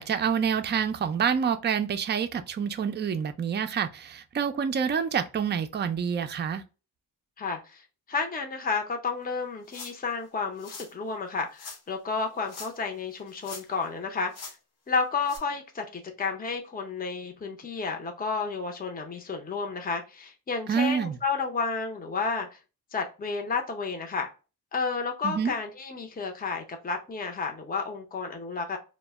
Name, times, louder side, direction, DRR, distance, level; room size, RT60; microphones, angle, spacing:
voice 1, 0.0-6.6 20.7-21.2 25.2-25.5, right 7 dB, 30° right, 0.4 m, -27 dB
voice 2, 7.4-14.3 14.9-22.6 22.9-24.3 24.7-28.8, left 4 dB, 25° left, 0.6 m, -31 dB
sound 1, 9.7-10.1 10.6-10.9 11.6-11.8 12.4-12.9 13.2-13.9 14.3-14.6 15.2-15.4, left 4 dB, 80° left, 0.9 m, -43 dB
2.1 x 2.0 x 3.4 m
cardioid pair, 65°, 38 cm